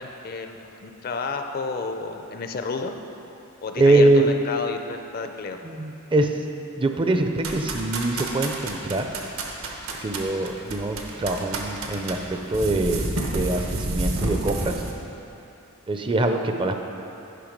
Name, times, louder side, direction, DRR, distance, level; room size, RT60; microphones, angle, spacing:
voice 1, 0.0-3.0 3.6-5.6, left 4 dB, 45° left, 6 dB, 0.5 m, -31 dB
voice 2, 3.8-4.3 5.6-6.4 6.8-9.1 10.0-12.2 12.5-14.8 15.9-16.7, right 2 dB, 25° right, 5 dB, 0.5 m, -23 dB
sound 1, 7.4-14.9, right 2 dB, 75° right, 1.0 m, -30 dB
10.0 x 5.4 x 5.2 m, 2.9 s
head